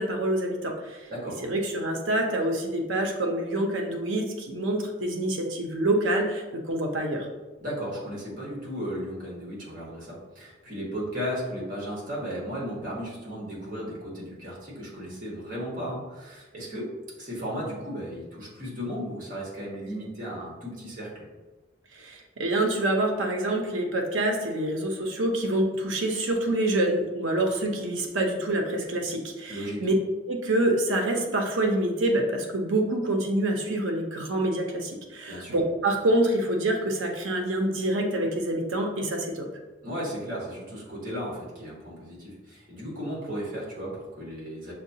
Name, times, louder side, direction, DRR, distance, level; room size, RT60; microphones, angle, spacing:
voice 1, 0.0-1.1 1.4-7.3 21.9-29.9 30.3-39.5, right 1 dB, 85° right, 2 dB, 0.7 m, -26 dB
voice 2, 7.6-16.9 17.2-21.3 29.5-29.8 35.3-35.6 39.8-44.7, equal, 45° right, -5 dB, 1.4 m, -35 dB
6.3 x 2.3 x 2.7 m, 1.2 s
head